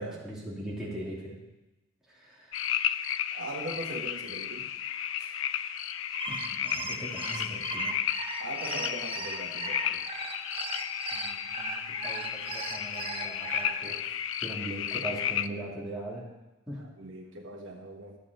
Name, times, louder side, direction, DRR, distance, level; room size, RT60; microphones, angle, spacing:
voice 1, 0.0-1.4 2.1-2.5 6.3-7.9 11.1-14.0 14.4-16.3 16.7-16.8, right 1 dB, 5° right, -7 dB, 3.1 m, -40 dB
sound 1, 2.5-15.5, left 10 dB, 75° left, 0.5 m, -33 dB
voice 2, 3.3-4.6 5.2-5.3 8.4-10.0 17.0-18.2, right 1 dB, 70° right, 1 dB, 1.5 m, -40 dB
sound 2, 6.0-13.7, right 4 dB, 25° right, 1.0 m, -37 dB
12.5 x 8.5 x 5.5 m, 1.0 s
head